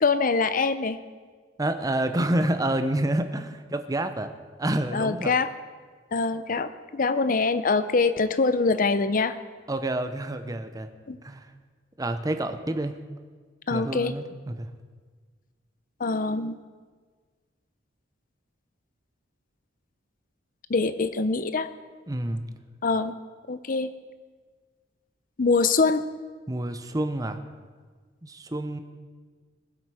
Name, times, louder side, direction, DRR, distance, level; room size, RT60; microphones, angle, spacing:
voice 1, 0.0-1.0 4.9-5.5 6.1-9.4 11.1-11.2 13.7-14.1 16.0-16.6 20.7-21.7 22.8-23.1 23.5-23.9 25.4-26.0, left 4 dB, 45° left, 12 dB, 0.6 m, -24 dB
voice 2, 1.6-4.3 4.6-5.3 9.7-10.9 11.2-11.5 12.0-13.0 13.7-14.7 22.1-22.5 26.5-27.4 28.2-28.8, right 1 dB, 20° right, 8 dB, 0.7 m, -28 dB
20.0 x 7.9 x 4.8 m, 1.5 s
head